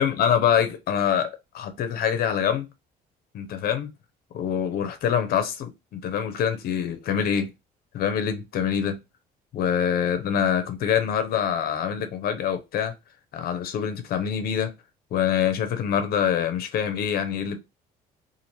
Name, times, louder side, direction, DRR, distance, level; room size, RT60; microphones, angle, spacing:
voice 1, 0.0-2.7 3.3-3.9 4.3-7.5 7.9-9.0 9.5-12.9 13.3-14.7 15.1-17.6, left 8 dB, 65° left, 0.5 m, -25 dB
2.7 x 2.5 x 3.0 m
cardioid pair, 110°, 17 cm